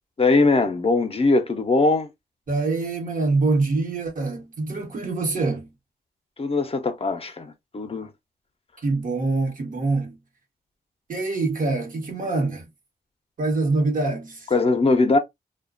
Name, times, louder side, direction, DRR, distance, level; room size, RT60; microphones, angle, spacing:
voice 1, 0.2-2.1 6.4-8.1 14.5-15.2, left 3 dB, 35° left, 0.5 m, -21 dB
voice 2, 2.5-5.7 8.8-10.2 11.1-12.7 13.4-14.5, right 3 dB, 55° right, 0.9 m, -24 dB
2.4 x 2.1 x 2.3 m
cardioid pair, 75°, 17 cm